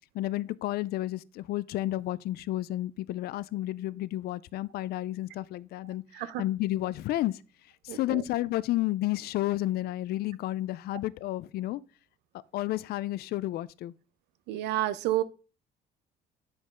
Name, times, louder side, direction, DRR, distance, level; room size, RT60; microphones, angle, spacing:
voice 1, 0.1-7.4 7.8-11.8 12.5-13.9, left 15 dB, 70° left, 0.4 m, -31 dB
voice 2, 6.1-6.4 7.9-8.2 14.5-15.2, right 14 dB, 90° right, 0.7 m, -30 dB
8.7 x 5.3 x 3.7 m
cardioid pair, 110°, 17 cm